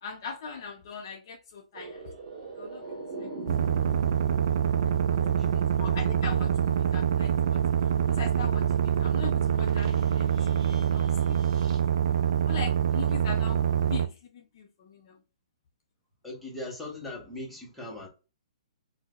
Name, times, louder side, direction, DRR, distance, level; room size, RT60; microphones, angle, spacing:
voice 1, 0.0-2.1 2.6-3.3 4.8-7.6 8.1-11.6 12.4-13.6 13.9-15.2, left 5 dB, 35° left, 0.4 m, -41 dB
sound 1, 1.7-11.8, right 3 dB, 30° right, 1.2 m, -45 dB
sound 2, 3.5-14.1, right 8 dB, 55° right, 0.3 m, -25 dB
voice 2, 5.2-5.6 16.2-18.1, left 1 dB, ahead, 0.7 m, -40 dB
4.3 x 2.1 x 2.2 m
hypercardioid pair, 175°, 4 cm